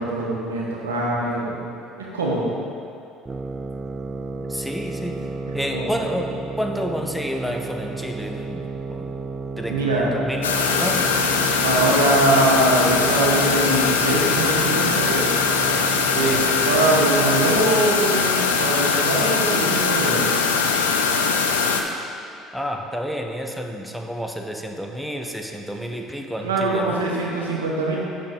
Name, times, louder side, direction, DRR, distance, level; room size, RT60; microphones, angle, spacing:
voice 1, 0.0-1.6 2.0-2.5 5.5-5.9 9.7-10.1 11.6-15.3 16.1-20.3 26.4-28.0, right 2 dB, 85° right, -3 dB, 1.2 m, -22 dB
sound 1, 3.3-17.8, right 3 dB, 25° right, 0.4 m, -32 dB
voice 2, 4.4-5.3 5.5-9.1 9.6-11.1 16.1-16.5 22.5-27.1, equal, ahead, 3 dB, 0.7 m, -30 dB
sound 2, 10.4-21.8, left 5 dB, 85° left, 0.4 m, -21 dB
7.5 x 6.5 x 3.6 m, 2.5 s
hypercardioid pair, 60°, 0 cm